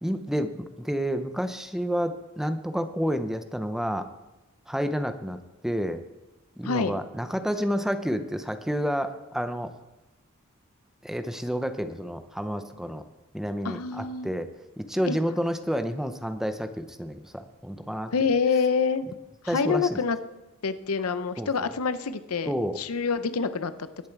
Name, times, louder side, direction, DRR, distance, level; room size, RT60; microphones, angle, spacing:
voice 1, 0.0-4.1 4.7-5.4 5.6-6.0 6.6-9.7 11.0-13.0 13.3-14.5 14.8-18.1 19.5-20.0 21.4-21.7 22.5-22.8, equal, ahead, 9 dB, 0.6 m, -29 dB
voice 2, 6.6-7.0 13.6-14.3 15.1-15.2 18.1-19.1 19.4-20.2 20.6-23.7, left 5 dB, 90° left, 12 dB, 0.7 m, -26 dB
19.5 x 7.1 x 4.6 m, 1.0 s
head